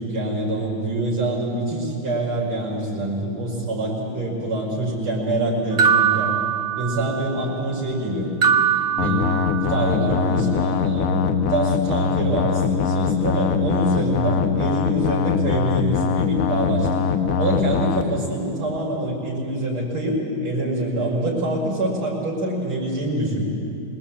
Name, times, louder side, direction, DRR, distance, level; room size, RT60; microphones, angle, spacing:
voice 1, 0.0-6.4 6.7-8.3 9.0-9.4 9.7-11.2 11.5-16.9 17.4-23.4, right 1 dB, 75° right, -4 dB, 6.6 m, -25 dB
sound 1, 5.8-7.3 8.4-9.9, right 8 dB, 35° right, 2.1 m, -21 dB
sound 2, 9.0-18.0, left 6 dB, 55° left, 1.0 m, -22 dB
27.0 x 22.0 x 8.9 m, 2.7 s
omnidirectional pair, 2.4 m